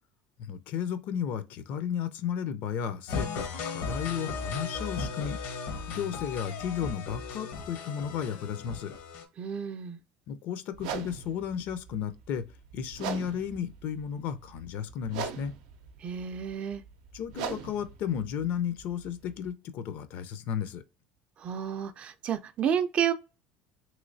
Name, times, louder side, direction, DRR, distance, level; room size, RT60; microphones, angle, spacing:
voice 1, 0.4-5.6 5.9-8.9 10.3-12.4 12.7-15.5 17.1-20.8, left 8 dB, 55° left, 0.5 m, -34 dB
sound 1, 3.1-9.2, left 4 dB, 75° left, 0.9 m, -36 dB
voice 2, 9.4-10.0 16.0-16.8 21.4-23.1, right 8 dB, 35° right, 0.3 m, -30 dB
sound 2, 10.7-19.5, right 7 dB, 85° right, 0.5 m, -41 dB
3.1 x 3.0 x 2.6 m
cardioid pair, 140°, 4 cm